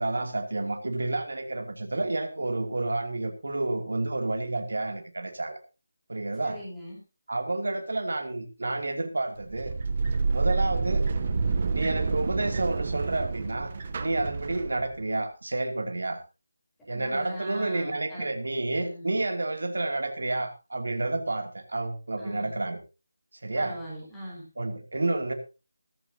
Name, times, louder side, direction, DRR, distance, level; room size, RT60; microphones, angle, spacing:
voice 1, 0.0-5.6 6.1-6.6 7.3-9.7 10.3-11.1 11.7-13.7 14.0-16.2 16.9-22.8 23.4-23.8 24.6-25.3, right 2 dB, 60° right, 6 dB, 2.6 m, -30 dB
voice 2, 6.4-7.0 16.9-18.3 18.7-19.1 22.2-22.6 23.6-24.4, equal, 5° left, -7 dB, 4.3 m, -40 dB
sound 1, 9.4-15.0, right 4 dB, 25° right, 0.9 m, -28 dB
17.0 x 14.5 x 2.8 m, 0.30 s
figure-of-eight pair, 180°, 0 cm